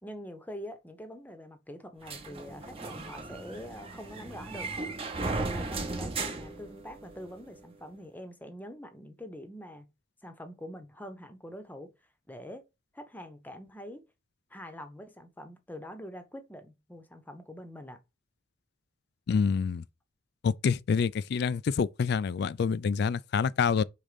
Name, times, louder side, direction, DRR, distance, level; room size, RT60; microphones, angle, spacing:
voice 1, 0.0-4.7 5.2-9.9 10.2-11.9 12.3-12.6 12.9-14.0 14.5-18.0, equal, 10° left, 0.8 m, -44 dB
sound 1, 2.1-7.3, right 3 dB, 30° right, 1.0 m, -36 dB
voice 2, 19.3-19.8 20.4-23.8, left 5 dB, 55° left, 0.3 m, -27 dB
5.2 x 3.7 x 5.0 m
head